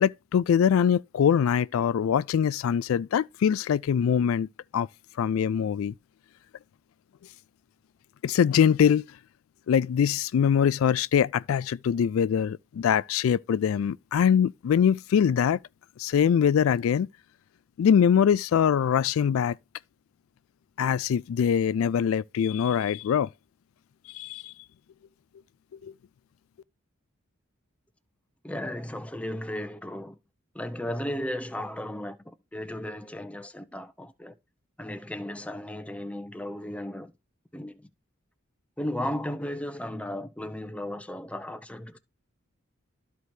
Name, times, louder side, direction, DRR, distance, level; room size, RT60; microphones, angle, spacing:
voice 1, 0.0-4.5 4.7-4.9 5.2-5.9 8.2-9.0 9.7-15.6 16.0-17.1 17.8-19.6 20.8-23.3 24.1-24.5 25.8-25.9, left 8 dB, 85° left, 0.3 m, -23 dB
voice 2, 28.4-30.2 30.5-34.4 34.8-37.1 37.5-37.9 38.8-42.0, left 1 dB, 5° left, 0.8 m, -35 dB
13.0 x 4.6 x 2.7 m
head